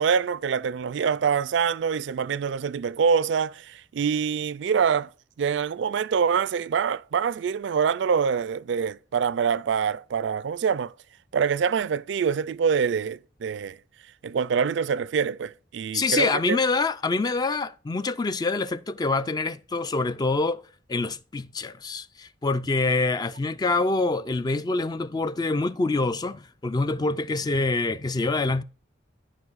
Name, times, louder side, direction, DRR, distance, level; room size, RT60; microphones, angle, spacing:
voice 1, 0.0-5.1 5.4-10.9 11.3-13.8 14.2-16.6, right 6 dB, 70° right, 0.4 m, -25 dB
voice 2, 15.9-20.6 20.9-28.6, left 3 dB, 20° left, 0.3 m, -26 dB
14.0 x 5.0 x 2.5 m
head